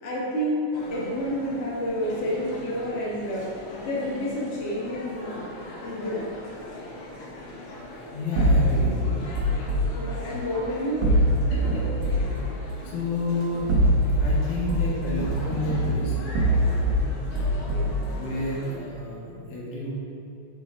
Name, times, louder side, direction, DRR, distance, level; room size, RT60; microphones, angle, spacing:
voice 1, 0.0-3.5 3.8-5.5 5.8-6.2 9.9-11.2 17.7-18.1, equal, 45° left, -6 dB, 0.9 m, -29 dB
sound 1, 0.7-18.8, left 1 dB, 65° left, 1.6 m, -41 dB
voice 2, 8.1-9.2 11.5-12.3 12.8-13.7 14.1-16.2 16.5-17.0 17.8-19.9, left 2 dB, 80° left, -5 dB, 2.7 m, -31 dB
sound 2, 8.4-9.9 11.0-12.3 13.5-14.4 14.7-17.0 17.4-18.0, right 1 dB, 75° right, 0.9 m, -23 dB
9.0 x 4.2 x 3.6 m, 2.5 s
omnidirectional pair, 3.4 m